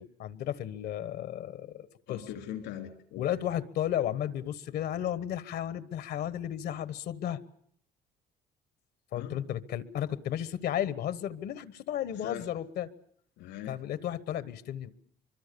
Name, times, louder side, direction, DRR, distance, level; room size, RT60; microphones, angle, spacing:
voice 1, 0.0-2.2 3.2-7.4 9.1-12.9 13.7-14.9, left 11 dB, 70° left, 15 dB, 1.3 m, -33 dB
voice 2, 2.1-3.3 9.1-9.4 12.2-12.5 13.4-13.8, left 10 dB, 90° left, 6 dB, 3.5 m, -40 dB
24.5 x 23.5 x 6.9 m, 0.65 s
cardioid pair, 110°, 17 cm